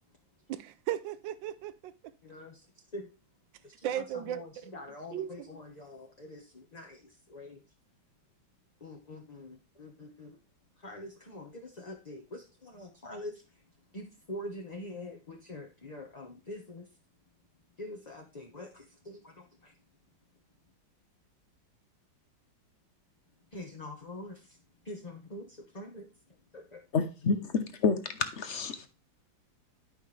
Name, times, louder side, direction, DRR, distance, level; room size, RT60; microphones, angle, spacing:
voice 1, 0.5-1.9 3.8-4.7 5.1-5.5, right 11 dB, 75° right, 1.4 m, -36 dB
voice 2, 2.2-3.1 3.6-7.6 8.8-10.4 10.8-13.6 13.9-16.9 17.8-19.7 23.5-24.6 24.8-26.8, left 1 dB, 25° left, 1.0 m, -45 dB
voice 3, 26.9-28.9, left 5 dB, 50° left, 0.8 m, -29 dB
11.5 x 5.6 x 3.3 m
omnidirectional pair, 2.1 m